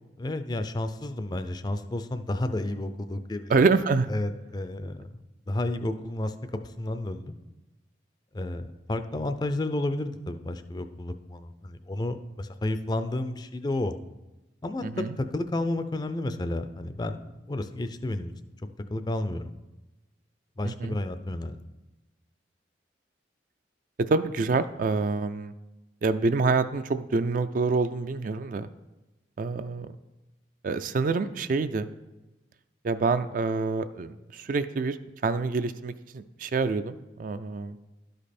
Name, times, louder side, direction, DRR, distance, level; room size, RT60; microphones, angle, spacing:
voice 1, 0.2-3.6 4.1-6.3 6.6-7.4 8.3-14.0 14.6-17.2 17.5-18.3 18.9-19.5 20.6-21.6, left 1 dB, 20° left, 9 dB, 0.4 m, -31 dB
voice 2, 3.5-4.1 14.8-15.1 20.6-21.0 24.1-25.5 26.0-28.7 29.4-30.0 30.6-31.9 32.8-35.0 35.2-37.8, right 4 dB, 45° right, 12 dB, 0.3 m, -26 dB
12.0 x 5.2 x 4.3 m, 1.1 s
head